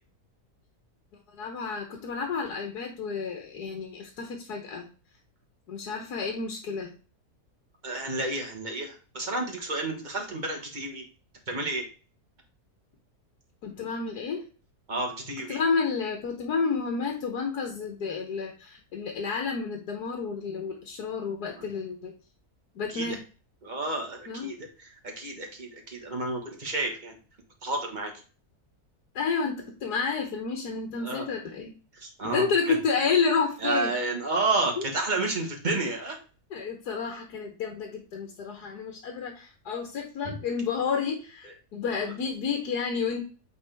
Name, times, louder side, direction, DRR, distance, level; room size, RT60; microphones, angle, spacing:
voice 1, 1.3-4.9 5.7-6.9 13.6-14.4 15.5-22.1 22.7-23.2 24.3-24.5 29.1-31.7 32.2-33.9 34.8-34.9 36.5-43.2, left 5 dB, 85° left, 3 dB, 1.6 m, -30 dB
voice 2, 7.8-11.0 11.5-11.8 14.9-15.6 21.6-21.7 22.9-23.2 23.6-27.2 27.6-28.1 31.0-31.2 31.9-32.8 33.6-36.2 40.2-40.4 41.4-41.5, right 2 dB, 30° right, 1 dB, 1.6 m, -31 dB
8.3 x 4.2 x 3.4 m, 0.36 s
omnidirectional pair, 1.6 m